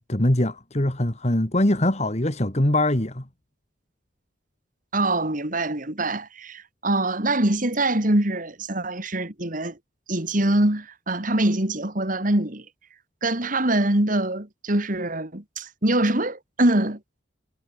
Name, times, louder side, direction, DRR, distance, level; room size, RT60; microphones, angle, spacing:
voice 1, 0.1-3.3, left 1 dB, 35° left, 2.3 m, -22 dB
voice 2, 4.9-9.8 10.1-12.6 13.2-17.2, right 1 dB, 45° right, 2.8 m, -24 dB
head